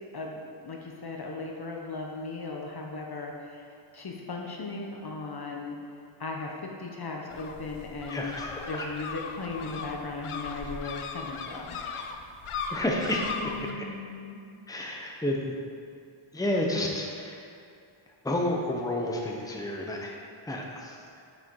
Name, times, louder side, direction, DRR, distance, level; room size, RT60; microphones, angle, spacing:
voice 1, 0.1-3.7 3.9-5.8 6.2-8.3 8.7-11.8 13.3-14.4, left 3 dB, 50° left, 0 dB, 0.9 m, -37 dB
sound 1, 7.3-13.7, left 5 dB, 75° left, 0.7 m, -38 dB
voice 2, 8.1-8.7 12.7-13.2 14.7-15.5 16.3-17.4 18.2-20.1 20.4-21.0, left 1 dB, 5° left, -1 dB, 0.9 m, -30 dB
6.6 x 5.2 x 4.6 m, 2.4 s
wide cardioid pair, 80°, 50 cm